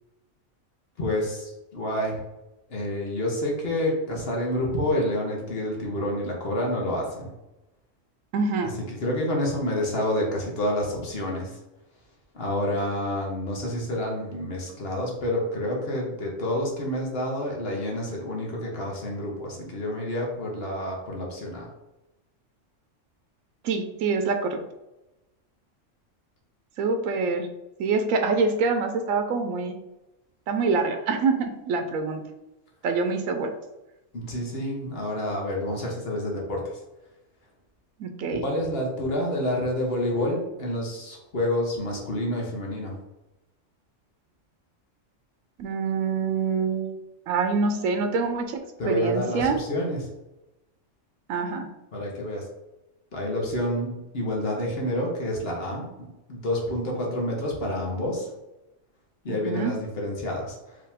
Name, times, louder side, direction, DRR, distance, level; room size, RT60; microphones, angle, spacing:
voice 1, 1.0-2.2 2.7-7.3 8.6-11.6 12.3-21.7 34.1-36.8 38.3-43.0 48.8-50.0 51.9-52.5 53.1-58.3 59.2-60.8, left 1 dB, 50° left, -1 dB, 1.2 m, -28 dB
voice 2, 8.3-8.7 23.6-24.6 26.8-27.5 27.8-29.8 30.5-32.2 32.8-33.5 38.0-38.4 45.6-47.0 47.3-48.6 48.9-49.6 51.3-51.7 59.3-59.7, right 4 dB, 90° right, 7 dB, 1.0 m, -25 dB
4.9 x 3.1 x 3.5 m, 0.97 s
omnidirectional pair, 1.3 m